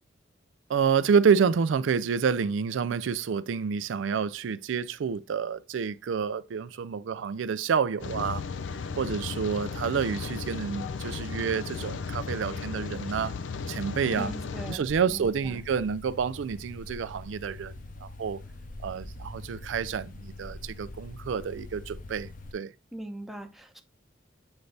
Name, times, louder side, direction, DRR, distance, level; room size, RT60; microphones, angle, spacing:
voice 1, 0.7-8.4 9.0-13.3 13.7-14.3 14.7-17.7 18.0-18.4 18.8-22.7, right 6 dB, 80° right, 0.4 m, -28 dB
Rain, 8.0-14.8, left 5 dB, 75° left, 0.5 m, -35 dB
voice 2, 14.2-15.6 22.9-23.8, right 1 dB, ahead, 0.7 m, -40 dB
sound 1, 14.8-22.5, left 2 dB, 45° left, 0.8 m, -44 dB
8.1 x 3.3 x 3.9 m
head